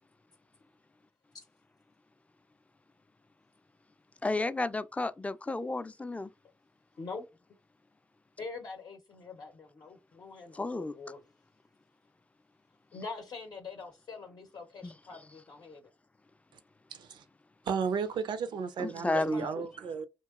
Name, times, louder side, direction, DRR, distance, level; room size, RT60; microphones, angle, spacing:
voice 1, 4.2-6.3 10.6-10.9 14.8-14.9 18.8-19.5, left 2 dB, 15° left, 0.3 m, -32 dB
voice 2, 6.9-7.3 8.4-11.2 12.9-15.9 19.1-19.6, left 4 dB, 65° left, 0.6 m, -44 dB
voice 3, 16.9-17.2 17.7-20.0, right 6 dB, 85° right, 0.4 m, -34 dB
2.9 x 2.7 x 2.3 m
cardioid pair, 55°, 8 cm